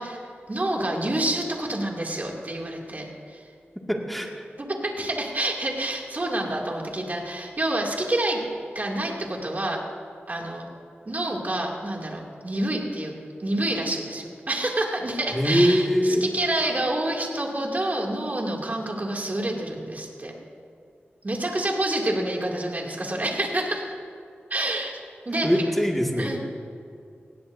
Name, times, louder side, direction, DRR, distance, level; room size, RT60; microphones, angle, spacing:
voice 1, 0.0-3.4 4.6-8.4 8.7-9.8 10.3-10.6 11.1-13.1 13.4-20.3 21.2-23.9 24.5-25.6 26.2-26.4, right 1 dB, 40° right, -1 dB, 2.7 m, -28 dB
voice 2, 3.9-4.5 15.3-16.3 25.4-26.4, equal, ahead, 0 dB, 2.1 m, -22 dB
19.5 x 16.5 x 2.7 m, 2.4 s
wide cardioid pair, 60°, 4 cm